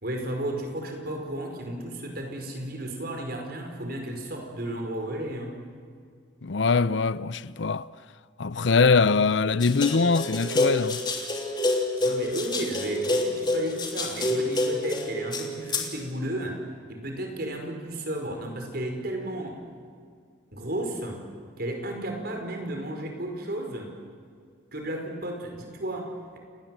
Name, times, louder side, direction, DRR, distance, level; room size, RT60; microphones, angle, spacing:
voice 1, 0.0-5.6 12.0-16.6 16.9-19.6 20.5-21.2 21.6-24.0 24.7-26.4, right 1 dB, 55° right, 5.3 m, -33 dB
voice 2, 6.4-7.9 8.4-11.0, left 4 dB, 70° left, 0.6 m, -22 dB
sound 1, 9.6-15.9, left 2 dB, 25° left, 3.1 m, -27 dB
30.0 x 19.5 x 8.0 m
head